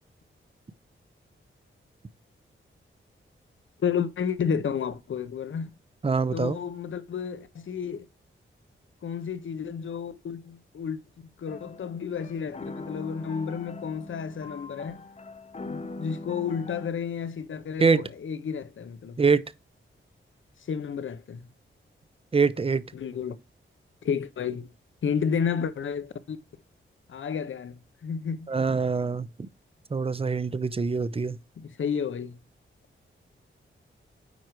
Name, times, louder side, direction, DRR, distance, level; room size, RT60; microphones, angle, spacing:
voice 1, 3.8-5.7 6.3-8.1 9.0-11.0 11.4-15.0 15.6-19.2 20.7-21.4 22.9-23.3 24.0-24.7 25.0-26.4 27.1-28.5 31.6-32.4, left 7 dB, 70° left, 0.8 m, -31 dB
voice 2, 6.0-6.6 17.8-18.0 19.2-19.4 22.3-22.8 28.5-29.3 29.9-31.4, right 4 dB, 25° right, 0.6 m, -24 dB
sound 1, 11.5-16.9, left 2 dB, 30° left, 0.8 m, -41 dB
9.2 x 4.7 x 3.1 m
cardioid pair, 75°, 21 cm